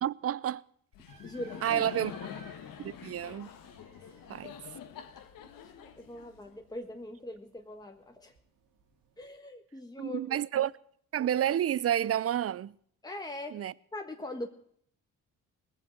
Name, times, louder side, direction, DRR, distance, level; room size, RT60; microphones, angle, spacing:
voice 1, 0.0-0.6 1.6-2.1 2.8-3.5 4.3-4.5 10.0-10.7 11.1-12.7 13.5-13.7, right 11 dB, 40° right, 0.5 m, -30 dB
Laughter, 0.9-6.8, left 9 dB, 70° left, 1.3 m, -46 dB
sound 1, 1.1-9.3, right 5 dB, 65° right, 2.1 m, -60 dB
voice 2, 1.2-1.9 4.0-4.1 5.4-8.3 9.2-10.4 13.0-14.5, left 1 dB, 10° left, 1.4 m, -42 dB
19.0 x 7.7 x 6.3 m
hypercardioid pair, 50°, 36 cm